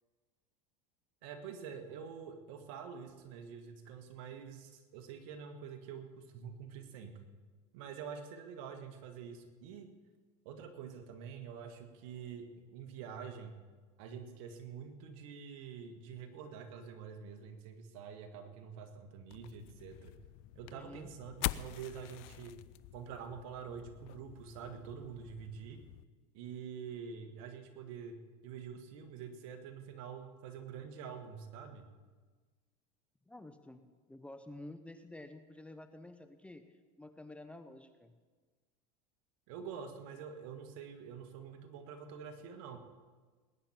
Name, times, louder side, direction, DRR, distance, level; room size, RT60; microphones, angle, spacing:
voice 1, 1.2-7.2 7.7-9.9 10.5-13.5 14.0-20.2 20.6-22.6 22.9-25.8 26.3-31.9 39.5-42.8, right 7 dB, 70° right, 6 dB, 1.8 m, -47 dB
sound 1, 19.3-26.0, left 18 dB, 60° left, 0.5 m, -45 dB
voice 2, 20.6-21.1 33.3-38.1, left 1 dB, 5° left, 9 dB, 0.7 m, -51 dB
20.0 x 9.9 x 4.5 m, 1.4 s
supercardioid pair, 110°, 19 cm